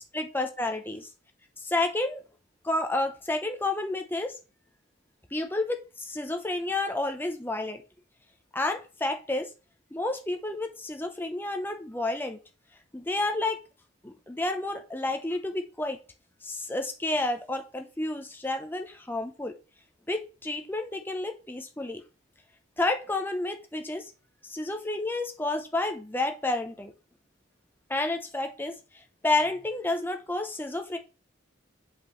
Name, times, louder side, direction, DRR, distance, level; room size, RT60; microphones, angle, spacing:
voice 1, 0.3-1.0 1.6-2.2 2.6-4.3 5.3-7.8 8.5-9.5 9.9-12.4 12.9-13.6 14.0-16.0 16.4-19.5 20.1-22.0 22.8-24.1 24.5-26.9 27.9-31.0, left 2 dB, 10° left, 0.7 m, -30 dB
8.0 x 5.7 x 3.1 m
head